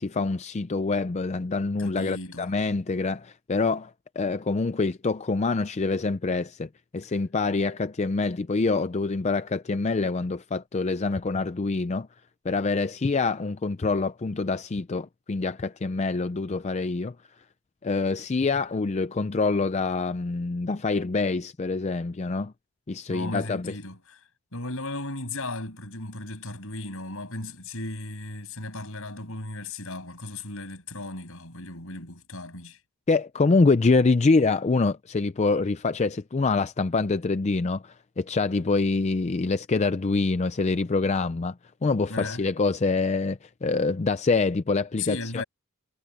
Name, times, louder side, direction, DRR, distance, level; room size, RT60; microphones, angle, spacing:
voice 1, 0.0-3.9 4.2-12.1 12.4-17.1 17.8-22.5 22.9-23.7 33.1-41.5 41.8-45.4, left 3 dB, 30° left, 0.4 m, -25 dB
voice 2, 1.8-2.5 23.1-24.2 24.5-32.8 42.1-42.4 45.0-45.4, left 2 dB, 65° left, 7.9 m, -36 dB
head